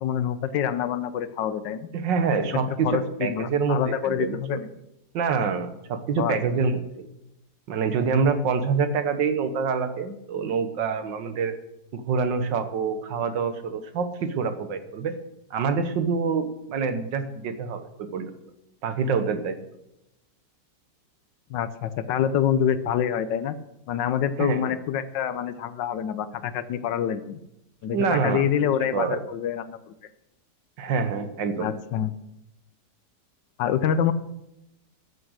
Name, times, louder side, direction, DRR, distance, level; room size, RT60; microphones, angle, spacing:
voice 1, 0.0-1.9 2.5-4.7 6.2-6.4 21.5-23.5 23.9-27.4 27.8-29.9 31.6-32.1 33.6-34.1, left 9 dB, 85° left, 13 dB, 1.4 m, -26 dB
voice 2, 1.9-4.4 5.1-7.1 7.7-11.5 11.9-15.1 15.5-18.3 18.8-19.6 24.4-24.7 27.9-28.5 28.9-29.2 30.8-31.7, right 5 dB, 80° right, 9 dB, 1.8 m, -26 dB
14.0 x 7.7 x 6.4 m, 0.87 s
omnidirectional pair, 1.9 m